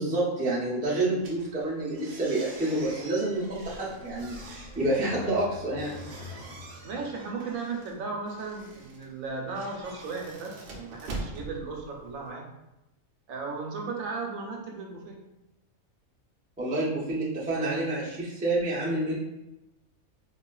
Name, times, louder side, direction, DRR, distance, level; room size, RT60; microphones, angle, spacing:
voice 1, 0.0-6.0 16.6-19.2, right 2 dB, 10° right, -7 dB, 0.4 m, -28 dB
sound 1, 1.2-12.3, right 2 dB, 60° right, 0.6 m, -44 dB
sound 2, 3.2-7.5, left 3 dB, 65° left, 1.1 m, -47 dB
voice 2, 6.8-12.5 13.3-15.2, right 4 dB, 80° right, 0 dB, 1.0 m, -36 dB
3.6 x 2.3 x 2.2 m, 0.92 s
omnidirectional pair, 1.4 m